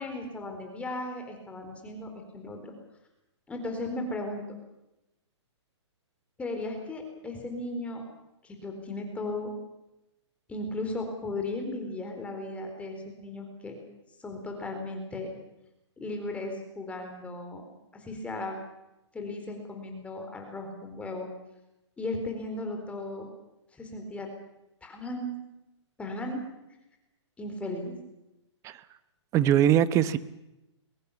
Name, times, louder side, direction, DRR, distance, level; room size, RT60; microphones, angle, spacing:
voice 1, 0.0-2.7 3.5-4.4 6.4-8.0 8.4-9.5 10.5-13.8 14.2-15.3 16.0-17.6 17.9-18.6 19.1-21.3 22.0-23.3 23.7-24.3 24.8-25.3 26.0-26.4 27.4-27.9, left 2 dB, 10° left, 3 dB, 4.2 m, -36 dB
voice 2, 29.3-30.2, right 11 dB, 20° right, 16 dB, 0.9 m, -21 dB
22.0 x 21.0 x 7.2 m, 0.91 s
hypercardioid pair, 150°, 15 cm